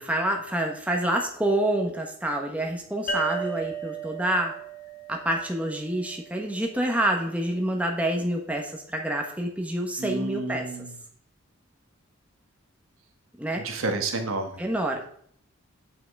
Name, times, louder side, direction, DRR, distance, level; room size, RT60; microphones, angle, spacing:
voice 1, 0.0-4.5 5.1-10.6 13.4-13.6 14.6-15.1, right 1 dB, 5° right, 1 dB, 1.2 m, -27 dB
sound 1, 3.1-6.5, right 4 dB, 45° left, 2.2 m, -35 dB
voice 2, 10.0-11.0 13.5-14.6, right 2 dB, 85° right, 4 dB, 1.5 m, -30 dB
8.9 x 5.7 x 4.7 m, 0.62 s
head